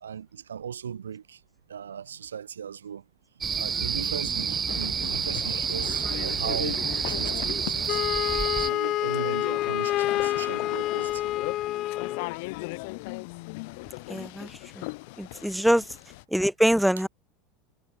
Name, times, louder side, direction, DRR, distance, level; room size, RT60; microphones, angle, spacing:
voice 1, 0.0-1.4 1.7-3.0 3.6-8.0 8.6-11.3, right 8 dB, 80° right, 2.7 m, -38 dB
sound 1, 3.4-8.7, right 6 dB, 25° right, 1.8 m, -29 dB
sound 2, 4.7-16.2, left 28 dB, 65° left, 0.9 m, -38 dB
Wind instrument woodwind instrument, 7.9-12.3, left 14 dB, 50° left, 1.3 m, -28 dB
voice 2, 14.1-14.5 14.8-14.9 15.2-15.8 16.3-17.1, equal, ahead, 0.9 m, -23 dB
hypercardioid pair, 80°, 0 cm